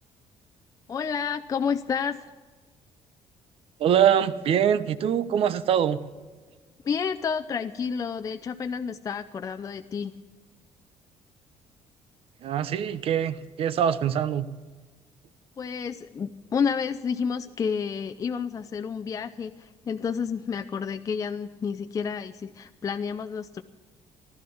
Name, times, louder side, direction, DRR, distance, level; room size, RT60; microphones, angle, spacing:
voice 1, 0.9-2.2 6.8-10.1 15.6-23.6, left 6 dB, 30° left, 7 dB, 0.6 m, -30 dB
voice 2, 3.8-6.0 12.4-14.5, right 9 dB, 60° right, 14 dB, 0.9 m, -23 dB
15.0 x 12.0 x 7.1 m, 1.4 s
cardioid pair, 120°, 11 cm